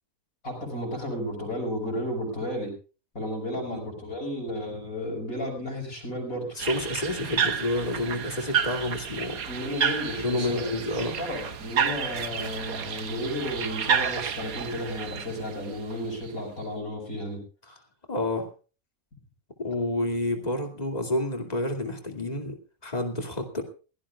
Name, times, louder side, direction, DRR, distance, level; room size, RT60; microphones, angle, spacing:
voice 1, 0.4-2.7 3.2-6.5 9.5-10.7 11.2-17.4, equal, 75° left, -3 dB, 5.4 m, -33 dB
voice 2, 6.6-9.4 10.2-11.2 17.7-17.8 18.1-18.5 19.6-22.6 22.8-23.6, left 1 dB, 30° left, 4 dB, 2.6 m, -29 dB
sound 1, 6.6-16.3, right 7 dB, 90° right, 1.6 m, -30 dB
21.5 x 17.0 x 2.4 m, 0.36 s
omnidirectional pair, 1.5 m